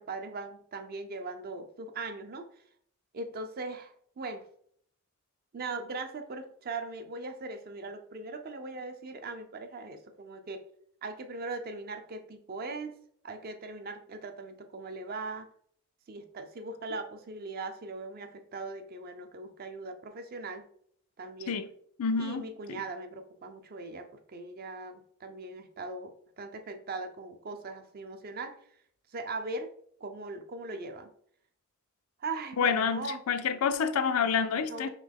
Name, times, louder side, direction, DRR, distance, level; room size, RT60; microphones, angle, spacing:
voice 1, 0.0-2.5 3.1-4.5 5.5-10.6 11.0-13.0 13.2-15.5 16.1-20.7 21.2-21.6 22.2-28.6 29.1-29.7 30.0-31.1 32.2-33.2 34.7-34.9, right 3 dB, 45° right, 0.5 m, -40 dB
voice 2, 22.0-22.8 32.6-34.9, left 6 dB, 80° left, 0.4 m, -28 dB
3.9 x 3.0 x 3.5 m
head